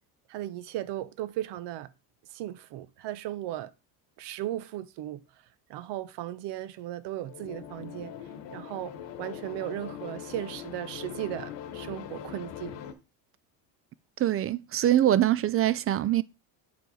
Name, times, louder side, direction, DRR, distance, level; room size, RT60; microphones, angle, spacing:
voice 1, 0.3-1.9 2.3-3.7 4.2-5.2 5.7-8.1 8.5-12.8, right 13 dB, 65° right, 0.8 m, -36 dB
sound 1, 7.2-12.9, left 9 dB, 70° left, 1.1 m, -41 dB
voice 2, 14.2-16.2, right 12 dB, 35° right, 0.4 m, -23 dB
7.5 x 4.6 x 3.9 m
supercardioid pair, 85°, 46 cm